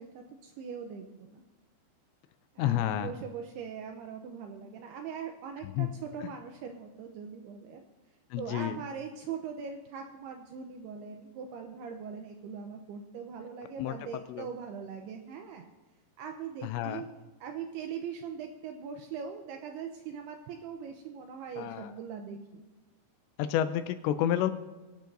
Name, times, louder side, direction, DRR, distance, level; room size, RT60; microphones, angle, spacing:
voice 1, 0.0-1.5 2.6-7.8 8.4-15.7 16.2-17.1 17.4-22.6, right 6 dB, 85° right, 4 dB, 2.4 m, -41 dB
voice 2, 2.6-3.1 5.6-5.9 6.2-6.3 8.3-8.8 13.8-14.5 16.6-17.0 21.6-21.9 23.4-24.5, left 11 dB, 85° left, 11 dB, 2.7 m, -30 dB
24.0 x 9.2 x 2.6 m, 1.2 s
omnidirectional pair, 5.3 m